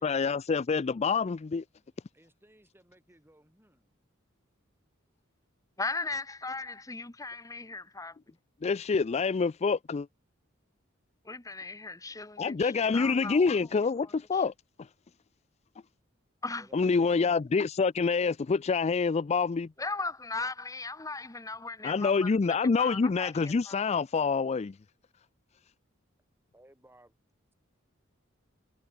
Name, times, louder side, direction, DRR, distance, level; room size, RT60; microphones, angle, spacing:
voice 1, 0.0-1.6 8.6-10.1 12.4-14.5 16.7-19.7 21.8-24.8, left 5 dB, 30° left, 0.4 m, -27 dB
voice 2, 2.1-4.0 16.6-17.3 26.5-27.2, right 1 dB, 10° right, 7.1 m, -60 dB
voice 3, 5.8-8.2 11.3-13.5 14.3-14.4 16.4-16.7 19.8-22.3 22.8-23.3 23.7-23.8, left 3 dB, 15° left, 1.2 m, -37 dB
head